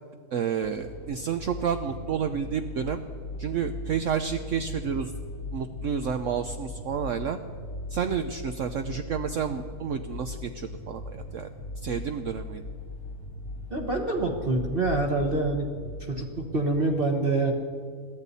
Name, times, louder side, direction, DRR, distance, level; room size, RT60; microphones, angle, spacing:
voice 1, 0.3-3.0 3.4-5.1 5.5-7.4 7.9-11.5 11.8-12.6, right 7 dB, 60° right, 7 dB, 1.0 m, -30 dB
sound 1, 0.6-16.8, left 2 dB, 70° left, 1.7 m, -39 dB
voice 2, 13.7-15.7 16.0-17.5, right 2 dB, 40° right, 1 dB, 1.4 m, -26 dB
22.0 x 14.5 x 4.1 m, 2.1 s
omnidirectional pair, 1.6 m